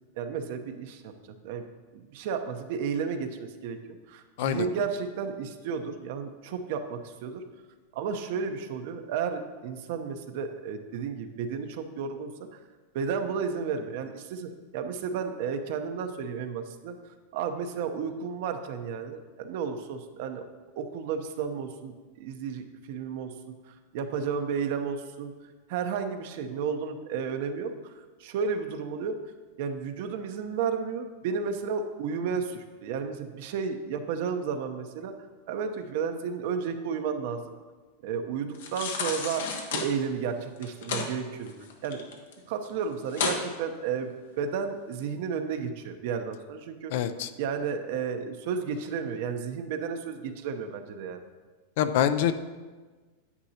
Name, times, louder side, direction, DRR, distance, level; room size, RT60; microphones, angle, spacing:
voice 1, 0.2-1.1 1.4-1.7 1.9-3.8 4.1-7.4 7.9-12.6 12.9-17.0 17.3-20.4 20.8-23.3 23.7-25.3 25.7-29.2 29.6-35.1 35.5-37.4 38.0-39.4 39.7-41.5 41.8-42.1 42.5-44.1 44.4-46.9 47.4-51.2, right 6 dB, 60° right, 7 dB, 0.8 m, -32 dB
sound 1, 38.5-39.9 40.6-41.1 41.5-42.3 42.7-42.8 43.1-43.4 43.9-44.0, left 5 dB, 85° left, 1.2 m, -31 dB
voice 2, 46.9-47.3 51.8-52.3, left 10 dB, 60° left, 11 dB, 0.5 m, -25 dB
9.7 x 8.3 x 2.9 m, 1.3 s
supercardioid pair, 145°, 0 cm